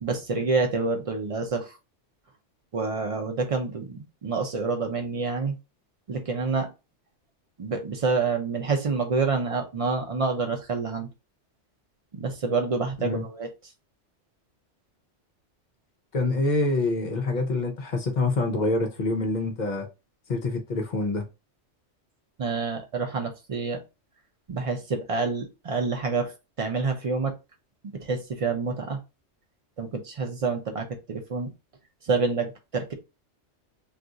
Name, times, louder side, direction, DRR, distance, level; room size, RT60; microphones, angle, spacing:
voice 1, 0.0-1.7 2.7-5.6 6.1-6.7 7.6-11.1 12.1-13.5 22.4-23.8 24.5-26.3 26.6-27.3 27.8-29.0 29.8-31.5 32.1-32.9, right 4 dB, 50° right, 0.4 m, -27 dB
voice 2, 16.1-19.9 20.3-21.3, left 2 dB, 50° left, 0.6 m, -26 dB
2.4 x 2.4 x 3.8 m
omnidirectional pair, 1.2 m